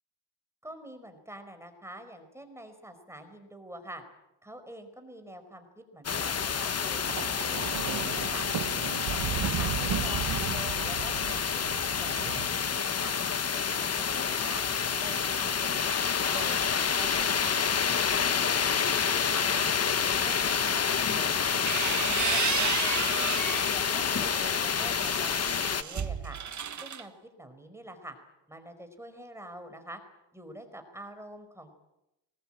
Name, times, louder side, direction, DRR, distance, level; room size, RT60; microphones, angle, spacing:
voice 1, 0.6-4.0 4.4-7.0 7.4-8.5 8.9-11.6 12.0-13.2 13.5-14.6 15.0-19.7 20.1-21.5 21.9-26.4 26.8-27.1 27.4-28.2 28.5-30.0 30.3-31.7, right 1 dB, 5° right, 7 dB, 4.8 m, -46 dB
sound 1, 6.0-25.8, left 6 dB, 35° left, 1.1 m, -28 dB
Thunder, 7.0-13.3 14.3-14.6, right 10 dB, 60° right, 1.3 m, -35 dB
sound 2, 21.5-23.7 24.2-27.0, right 7 dB, 40° right, 1.5 m, -33 dB
24.5 x 20.5 x 9.0 m, 0.91 s
cardioid pair, 120°, 44 cm